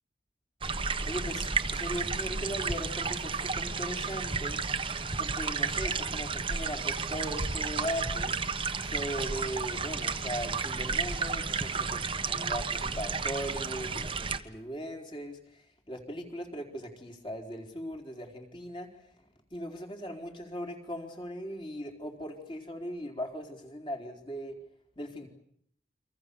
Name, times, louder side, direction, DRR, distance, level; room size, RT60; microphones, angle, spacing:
sound 1, 0.6-14.4, right 4 dB, 30° right, 1.2 m, -32 dB
voice 1, 1.0-4.6 5.2-8.3 8.8-18.9 19.5-24.6 25.0-25.3, equal, 25° left, 3 dB, 4.3 m, -39 dB
30.0 x 25.0 x 7.0 m, 0.68 s
head